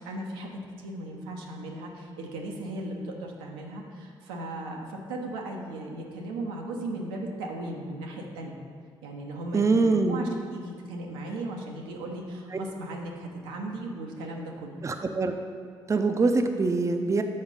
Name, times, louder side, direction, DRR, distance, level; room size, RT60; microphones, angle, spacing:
voice 1, 0.0-8.6 9.0-14.7, right 1 dB, 85° right, 0 dB, 0.8 m, -37 dB
voice 2, 9.5-10.3 14.8-15.3 15.9-17.2, right 3 dB, 25° right, 6 dB, 0.6 m, -24 dB
6.4 x 4.7 x 5.2 m, 2.1 s
hypercardioid pair, 50°, 12 cm